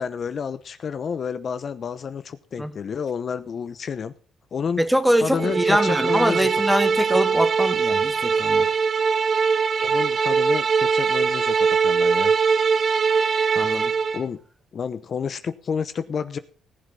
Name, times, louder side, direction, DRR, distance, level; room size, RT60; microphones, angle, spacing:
voice 1, 0.0-4.1 4.5-4.8 5.2-6.5 6.9-7.0 9.8-12.3 14.1-14.4 14.7-16.4, left 6 dB, 50° left, 0.9 m, -30 dB
voice 2, 4.8-8.7 13.5-13.9, equal, 5° right, 1.6 m, -23 dB
sound 1, 5.4-14.2, right 5 dB, 45° right, 0.7 m, -21 dB
18.5 x 7.3 x 5.6 m
cardioid pair, 90°, 0 cm